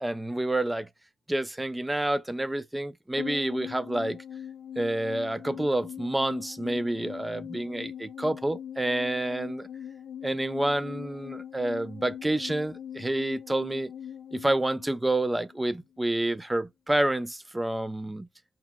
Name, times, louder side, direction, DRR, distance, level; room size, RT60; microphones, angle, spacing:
voice 1, 0.0-0.9 1.3-4.2 4.8-9.7 10.2-13.9 14.3-18.3, right 1 dB, 10° right, 0.3 m, -28 dB
sound 1, 3.2-15.7 15.9-16.0, left 9 dB, 70° left, 0.4 m, -41 dB
2.7 x 2.3 x 3.5 m
cardioid pair, 90°, 0 cm